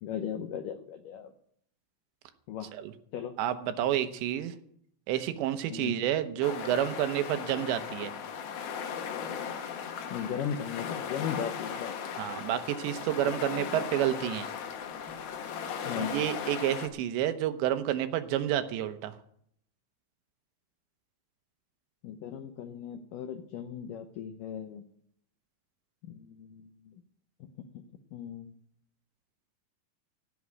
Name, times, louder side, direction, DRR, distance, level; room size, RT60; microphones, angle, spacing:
voice 1, 0.0-1.3 2.5-2.7 3.1-3.4 5.7-6.0 10.1-11.9 15.8-16.2 22.0-24.8 26.1-26.9 28.1-28.5, left 8 dB, 85° left, 7 dB, 1.9 m, -37 dB
voice 2, 3.4-4.6 5.1-8.1 12.2-14.5 16.0-19.1, right 11 dB, 90° right, 9 dB, 3.2 m, -29 dB
sound 1, 6.4-16.9, left 7 dB, 65° left, 2.8 m, -37 dB
16.5 x 6.2 x 9.6 m, 0.69 s
omnidirectional pair, 5.0 m